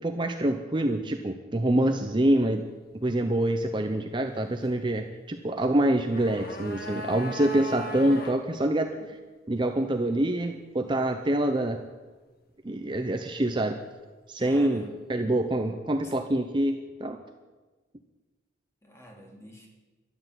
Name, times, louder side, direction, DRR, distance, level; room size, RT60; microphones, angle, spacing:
voice 1, 0.0-2.6 3.0-8.9 9.5-11.8 12.6-13.8 14.3-14.8 15.1-17.2, right 1 dB, 25° right, 5 dB, 0.7 m, -26 dB
sound 1, 5.8-8.4 8.7-8.8, equal, 50° left, 1.7 m, -38 dB
voice 2, 14.4-15.0 16.0-16.1 18.8-19.7, equal, 15° left, 0 dB, 2.6 m, -46 dB
13.0 x 10.5 x 8.2 m, 1.3 s
head